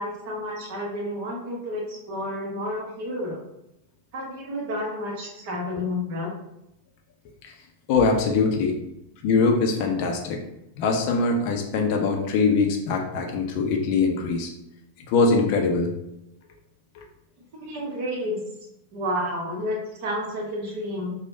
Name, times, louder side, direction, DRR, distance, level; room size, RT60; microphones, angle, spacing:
voice 1, 0.0-3.4 4.1-6.3 17.6-18.4 18.9-21.2, left 1 dB, 45° right, -1 dB, 0.8 m, -30 dB
voice 2, 7.9-8.8 9.2-10.4 10.8-14.5 15.1-15.9 17.0-17.1, left 4 dB, 45° left, 2 dB, 0.4 m, -22 dB
3.1 x 2.1 x 2.5 m, 0.84 s
figure-of-eight pair, 90°, 0 cm